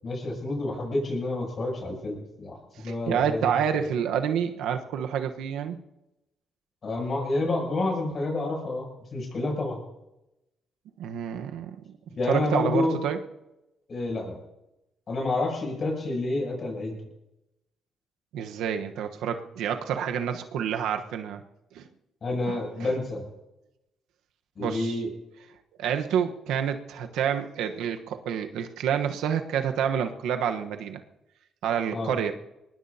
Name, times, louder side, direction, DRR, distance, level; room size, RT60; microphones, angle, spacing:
voice 1, 0.0-3.8 6.8-9.8 12.2-13.0 13.9-14.4 15.1-17.0 22.2-23.3 24.6-25.1 31.9-32.1, left 2 dB, 45° left, 0 dB, 7.7 m, -29 dB
voice 2, 2.8-5.8 11.0-11.8 12.3-13.2 18.3-21.4 21.7-21.9 22.5-22.9 24.6-25.0 25.8-31.0 31.6-32.3, right 8 dB, 85° right, 6 dB, 1.2 m, -28 dB
23.0 x 19.5 x 2.9 m, 0.93 s
cardioid pair, 90°, 0 cm